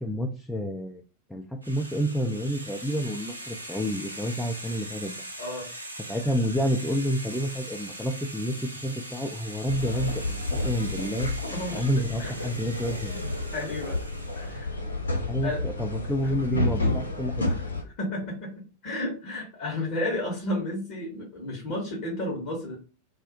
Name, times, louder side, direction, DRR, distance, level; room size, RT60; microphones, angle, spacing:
voice 1, 0.0-1.0 1.3-5.2 6.1-11.3 11.7-13.2 15.3-17.4, equal, 5° left, 1 dB, 0.4 m, -29 dB
sound 1, 1.6-14.7, right 1 dB, 85° right, 0.4 m, -41 dB
sound 2, 9.7-17.8, left 2 dB, 75° left, 1.0 m, -30 dB
voice 2, 11.5-11.9 12.2-12.5 13.5-14.0 14.4-14.7 15.4-15.6 16.2-16.3 17.5-17.7 18.0-18.5 18.8-22.8, left 1 dB, 45° left, -2 dB, 1.0 m, -32 dB
2.5 x 2.0 x 3.9 m, 0.34 s
figure-of-eight pair, 90°, 0 cm